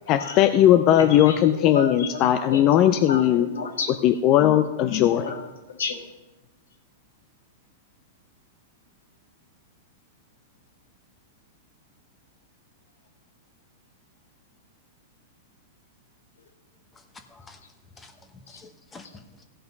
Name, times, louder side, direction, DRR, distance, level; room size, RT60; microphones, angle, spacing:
voice 1, 0.1-3.5 4.0-5.3, left 11 dB, 40° left, 8 dB, 0.5 m, -18 dB
voice 2, 1.0-2.2 2.5-4.2 4.9-6.1 18.5-18.6, left 4 dB, 90° left, 5 dB, 1.7 m, -33 dB
voice 3, 17.1-17.6 18.0-19.4, left 3 dB, 20° left, 6 dB, 1.1 m, -48 dB
16.0 x 5.7 x 5.3 m, 1.1 s
hypercardioid pair, 125°, 0 cm